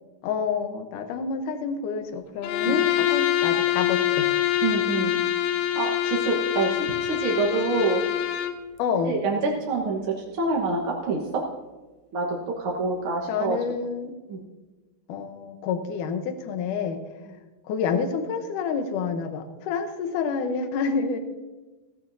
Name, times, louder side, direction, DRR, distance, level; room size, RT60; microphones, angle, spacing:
voice 1, 0.2-4.3 8.8-9.2 13.3-14.1 15.1-17.0 17.7-21.2, left 5 dB, 75° left, 7 dB, 2.4 m, -28 dB
Bowed string instrument, 2.4-8.6, left 12 dB, 90° left, 2.6 m, -25 dB
voice 2, 4.6-5.2 5.7-6.8 7.1-8.0 9.0-9.4 9.7-10.0 10.3-11.2 12.1-12.3 12.6-13.6 14.3-14.4, right 3 dB, 55° right, -2 dB, 1.6 m, -26 dB
15.0 x 15.0 x 2.7 m, 1.2 s
omnidirectional pair, 3.9 m